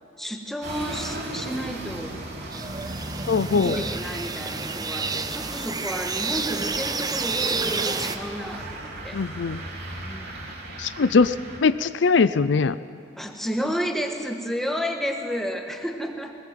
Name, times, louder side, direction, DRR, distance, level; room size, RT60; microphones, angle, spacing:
voice 1, 0.2-2.2 3.5-9.2 10.0-10.5 13.2-16.4, equal, ahead, 3 dB, 1.6 m, -31 dB
sound 1, 0.6-11.6, right 1 dB, 60° right, 3.4 m, -37 dB
sound 2, 2.5-8.2, right 4 dB, 20° right, 0.8 m, -29 dB
voice 2, 3.3-3.8 9.1-9.6 10.8-11.3 11.6-12.8, left 4 dB, 75° left, 14 dB, 0.5 m, -21 dB
20.5 x 20.0 x 7.7 m, 2.8 s
head